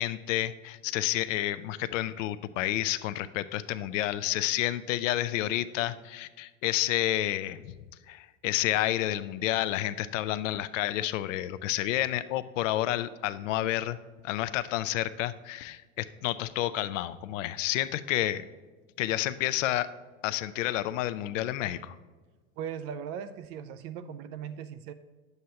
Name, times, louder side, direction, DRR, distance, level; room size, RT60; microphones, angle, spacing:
voice 1, 0.0-7.7 8.1-14.0 14.2-18.4 19.0-19.9 20.2-22.0, left 14 dB, 60° left, 14 dB, 0.5 m, -30 dB
voice 2, 22.6-24.9, right 8 dB, 35° right, 12 dB, 0.4 m, -38 dB
10.0 x 7.9 x 2.8 m, 1.3 s
hypercardioid pair, 90°, 43 cm